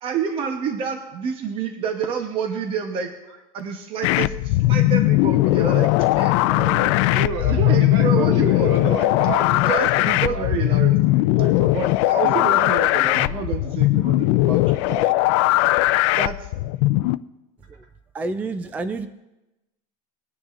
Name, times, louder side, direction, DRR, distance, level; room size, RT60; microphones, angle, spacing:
voice 1, 0.0-3.1 3.5-5.9 6.2-7.0 7.4-8.7 9.5-11.2 11.7-15.1 16.2-16.5, right 6 dB, 30° right, 5 dB, 1.0 m, -29 dB
sound 1, 4.0-17.2, left 18 dB, 60° left, 0.4 m, -19 dB
voice 2, 7.0-10.6 11.3-11.8 12.2-12.7 13.1-13.4 14.7-14.8 15.1-15.2, right 3 dB, 75° right, 0 dB, 3.6 m, -30 dB
voice 3, 18.1-19.1, right 3 dB, 10° right, 11 dB, 0.4 m, -29 dB
21.0 x 9.7 x 2.5 m, 0.98 s
cardioid pair, 165°, 17 cm